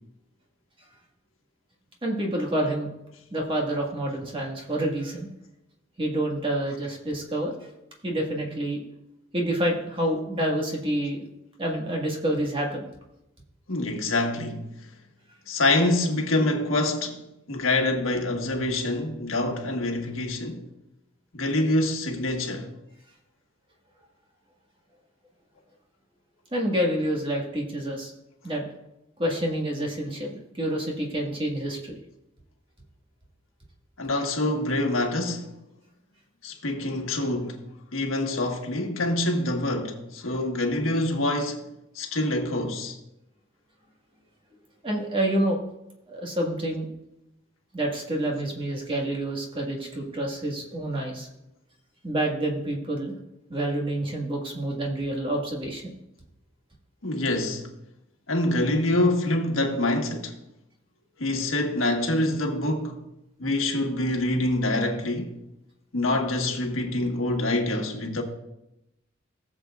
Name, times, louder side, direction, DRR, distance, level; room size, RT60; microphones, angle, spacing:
voice 1, 2.0-2.9 3.3-5.3 6.0-7.5 8.0-8.8 9.3-11.2 11.6-12.8 26.5-28.1 28.4-28.7 29.2-31.9 44.8-45.6 46.1-46.9 47.7-51.3 52.0-53.1 53.5-55.9, right 1 dB, 25° right, 1.7 m, -28 dB
voice 2, 13.7-14.7 15.5-17.2 17.5-20.6 21.3-22.7 34.0-35.5 36.4-37.6 37.9-41.7 41.9-43.0 57.0-57.6 58.3-60.3 61.2-63.0 63.4-65.3 65.9-68.2, left 1 dB, 90° left, 1.5 m, -26 dB
17.5 x 7.4 x 2.5 m
head